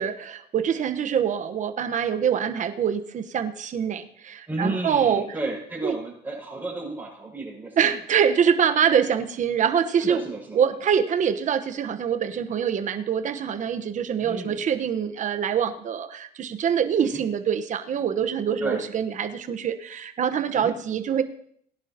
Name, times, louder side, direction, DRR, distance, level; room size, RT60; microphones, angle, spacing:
voice 1, 0.0-5.3 5.8-5.9 7.8-10.3 10.5-21.2, right 8 dB, 50° right, 9 dB, 1.1 m, -24 dB
voice 2, 4.5-7.9 10.0-10.6 14.2-14.6 17.0-17.2 18.6-18.8 20.5-20.7, right 2 dB, 10° right, -7 dB, 5.9 m, -32 dB
20.5 x 11.0 x 2.9 m, 0.63 s
cardioid pair, 110°, 17 cm